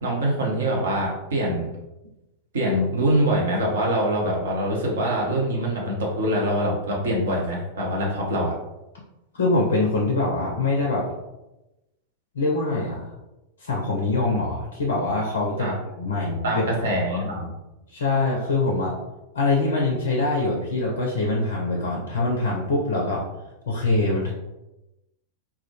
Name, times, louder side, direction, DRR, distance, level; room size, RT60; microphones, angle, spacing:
voice 1, 0.0-1.7 2.5-8.5 15.6-15.7 16.4-17.5, right 1 dB, 65° right, -2 dB, 0.7 m, -24 dB
voice 2, 9.3-11.1 12.3-13.1 13.6-15.7 16.0-16.6 17.1-17.5 17.9-19.0 19.3-23.2 23.7-24.3, left 2 dB, 65° left, -2 dB, 0.4 m, -24 dB
2.2 x 2.1 x 2.7 m, 0.97 s
figure-of-eight pair, 90°, 0 cm